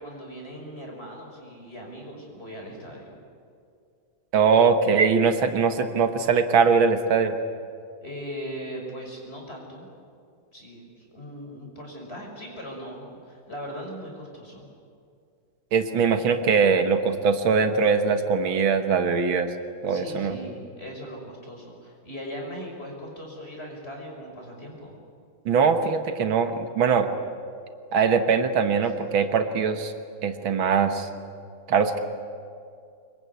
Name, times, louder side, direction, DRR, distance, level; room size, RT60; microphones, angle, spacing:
voice 1, 0.0-3.1 8.0-9.9 10.5-14.7 19.8-25.0 28.8-28.9, equal, 30° left, 0 dB, 6.1 m, -39 dB
voice 2, 4.3-7.4 15.7-19.5 19.8-20.4 25.5-27.1 27.9-29.9 30.2-31.1 31.7-32.0, right 5 dB, 85° right, 7 dB, 2.2 m, -21 dB
24.5 x 22.5 x 9.6 m, 2.4 s
omnidirectional pair, 2.1 m